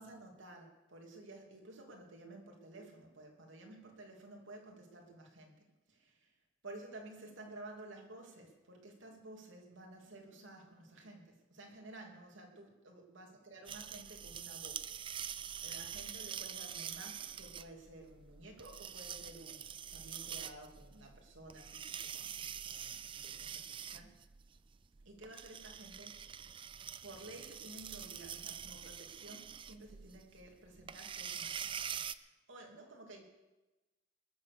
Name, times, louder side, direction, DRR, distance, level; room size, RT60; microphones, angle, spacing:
voice 1, 0.0-6.3 6.6-24.2 25.0-26.6 27.0-31.7 32.1-33.2, right 2 dB, 80° right, 1 dB, 2.9 m, -53 dB
sound 1, 13.7-32.1, right 8 dB, 25° right, 0.4 m, -45 dB
21.0 x 7.5 x 6.8 m, 1.1 s
head